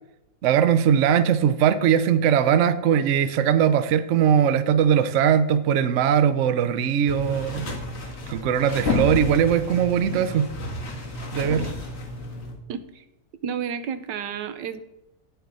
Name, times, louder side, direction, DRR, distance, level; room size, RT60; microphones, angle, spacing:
voice 1, 0.4-7.7 8.3-10.5 11.3-11.7, right 8 dB, 65° right, 12 dB, 0.7 m, -20 dB
sound 1, 7.1-12.5, left 2 dB, 40° left, 2.0 m, -31 dB
voice 2, 12.7-13.0 13.4-14.8, right 7 dB, 80° right, 11 dB, 1.4 m, -31 dB
9.7 x 8.1 x 4.0 m, 0.90 s
omnidirectional pair, 1.9 m